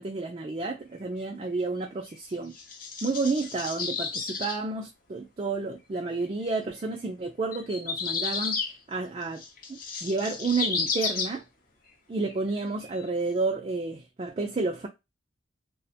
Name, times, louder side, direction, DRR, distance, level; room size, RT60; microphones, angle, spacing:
voice 1, 0.0-2.5 3.0-9.4 9.7-11.4 12.1-14.9, right 3 dB, 30° right, 0.3 m, -31 dB
sound 1, 2.1-4.6 6.1-6.2 7.5-8.7 9.2-11.4 12.2-12.3 12.8-13.0, left 5 dB, 45° left, 0.6 m, -32 dB
2.8 x 2.1 x 2.7 m
head